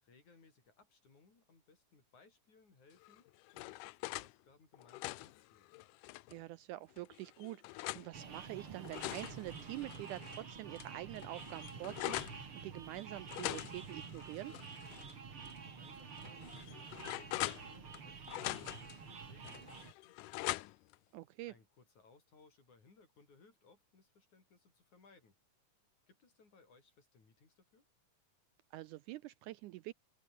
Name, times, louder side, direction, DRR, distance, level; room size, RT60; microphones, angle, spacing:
voice 1, 0.0-5.7 15.4-18.2 18.6-20.7 21.5-25.4 26.1-27.9, left 4 dB, 60° left, 7.1 m, -66 dB
sound 1, 3.0-4.3 4.7-6.4 7.0-8.1 8.7-10.4 10.8-10.9 11.2-12.4 13.3-15.1 15.5-15.6 16.2-18.0 18.3-19.0 19.5-21.0, left 20 dB, 80° left, 2.0 m, -43 dB
voice 2, 6.3-14.5 21.1-21.5 28.7-29.9, right 16 dB, 80° right, 1.9 m, -46 dB
sound 2, 8.1-19.9, right 5 dB, 40° right, 3.5 m, -49 dB
open air
omnidirectional pair, 3.9 m